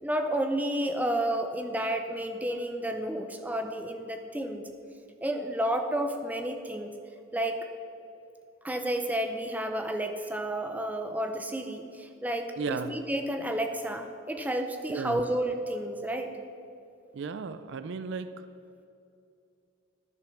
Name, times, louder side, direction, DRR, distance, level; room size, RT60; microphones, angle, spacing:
voice 1, 0.0-4.6 5.2-6.9 7.3-7.7 8.6-16.3, right 1 dB, 10° right, 6 dB, 0.6 m, -31 dB
voice 2, 12.6-12.9 14.9-15.2 17.1-18.3, right 5 dB, 60° right, 11 dB, 0.4 m, -34 dB
11.0 x 6.8 x 6.3 m, 2.6 s
head